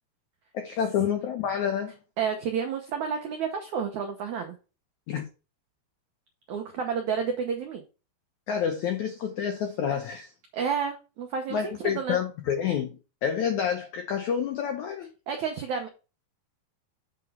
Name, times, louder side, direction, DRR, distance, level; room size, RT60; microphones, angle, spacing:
voice 1, 0.5-1.9 5.1-5.3 8.5-10.3 11.5-13.0 13.2-15.1, left 8 dB, 85° left, 1.6 m, -28 dB
voice 2, 2.2-4.5 6.5-7.8 10.5-12.2 15.3-15.9, right 6 dB, 80° right, 1.6 m, -30 dB
8.1 x 4.0 x 5.4 m
omnidirectional pair, 4.7 m